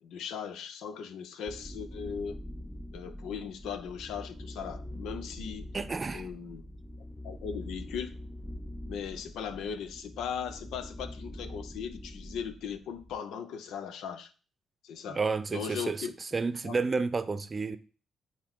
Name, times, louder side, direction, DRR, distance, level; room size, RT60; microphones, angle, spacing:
voice 1, 0.0-2.4 2.9-5.7 6.1-6.7 7.2-8.2 8.9-14.3 14.8-15.2 15.5-16.1 16.6-16.8, left 7 dB, 70° left, 0.5 m, -38 dB
sound 1, 1.5-13.2, left 1 dB, 10° left, 0.5 m, -44 dB
voice 2, 5.7-6.3 15.1-17.8, right 4 dB, 35° right, 0.7 m, -31 dB
8.6 x 2.9 x 5.2 m
hypercardioid pair, 45°, 0 cm